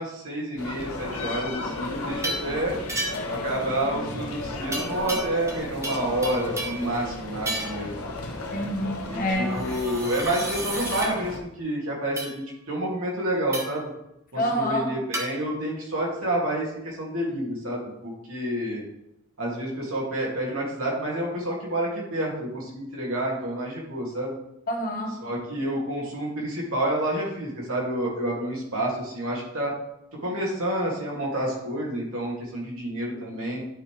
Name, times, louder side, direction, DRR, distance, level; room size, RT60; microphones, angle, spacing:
voice 1, 0.0-2.8 3.3-8.0 9.1-13.9 14.3-18.8 19.4-24.3 25.2-29.7 30.2-33.6, right 1 dB, 75° right, -3 dB, 2.8 m, -29 dB
sound 1, 0.6-11.4, left 2 dB, 90° left, 1.2 m, -34 dB
sound 2, 2.2-2.5 2.9-3.4 4.7-5.6 5.8-6.9 7.5-7.8 9.6-11.1 12.2-12.4 13.5-13.8 15.1-15.3, right 2 dB, 15° right, 0.9 m, -32 dB
voice 2, 8.5-9.6 14.3-14.9 24.7-25.1, equal, 40° left, 1 dB, 1.4 m, -27 dB
10.5 x 5.7 x 3.4 m, 0.81 s
head